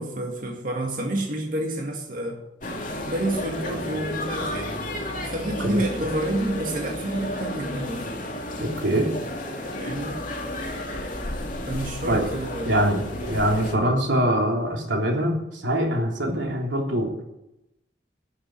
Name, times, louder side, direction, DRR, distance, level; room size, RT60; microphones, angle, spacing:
voice 1, 0.0-2.4 3.0-4.7 5.3-8.1 9.8-10.2 11.7-12.7, right 1 dB, 50° right, 1 dB, 1.9 m, -29 dB
sound 1, 2.6-13.8, left 1 dB, 45° left, 2.6 m, -32 dB
voice 2, 8.6-9.1 12.1-12.3 12.6-17.1, right 1 dB, 90° right, 0 dB, 3.4 m, -23 dB
11.5 x 7.8 x 9.7 m, 0.87 s
head